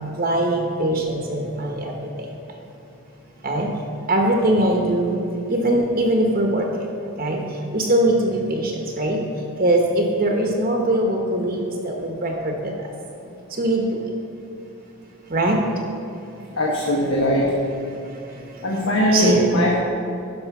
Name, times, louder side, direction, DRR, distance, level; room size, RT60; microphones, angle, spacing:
voice 1, 0.2-1.9 3.4-3.7 4.1-5.2 5.5-6.6 7.2-7.4 7.7-9.2 9.6-11.6 11.8-12.5 13.6-13.8 15.3-15.6 19.1-19.4, right 1 dB, 40° right, 1 dB, 0.9 m, -21 dB
voice 2, 16.5-17.6 18.6-19.7, equal, 70° left, -3 dB, 1.2 m, -20 dB
11.0 x 5.2 x 5.9 m, 2.8 s
head